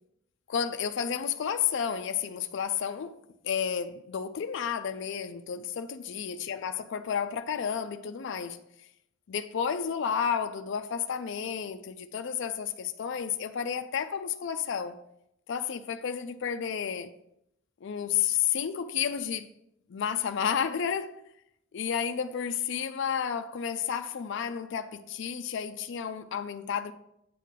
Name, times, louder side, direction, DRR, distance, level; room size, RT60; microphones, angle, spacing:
voice 1, 0.5-3.2 3.4-8.6 9.3-15.0 15.5-17.1 17.8-19.5 19.9-21.2 21.7-26.9, left 7 dB, 65° left, 0.4 m, -31 dB
8.3 x 3.7 x 5.6 m
head